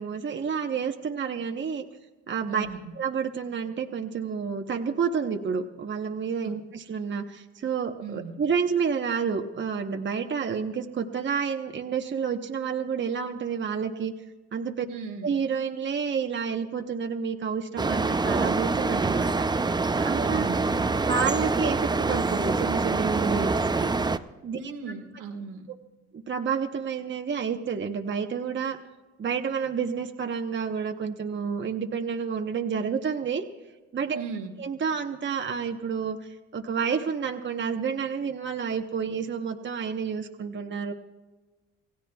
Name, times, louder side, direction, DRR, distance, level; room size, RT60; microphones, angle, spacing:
voice 1, 0.0-1.8 2.3-2.7 3.0-14.1 14.5-14.9 15.2-19.4 20.0-20.5 21.0-23.9 24.4-24.6 26.1-28.8 29.2-33.4 33.9-34.2 34.6-40.9, right 6 dB, 40° right, 5 dB, 1.0 m, -29 dB
voice 2, 2.5-2.8 6.4-6.6 8.0-8.3 14.9-15.3 20.2-21.0 24.6-25.7 34.1-34.6, right 5 dB, 85° right, 3 dB, 1.8 m, -37 dB
squirrel monkeys, 17.8-24.2, right 3 dB, 15° right, 0.5 m, -25 dB
27.5 x 16.5 x 2.3 m, 1.2 s
cardioid pair, 90°, 30 cm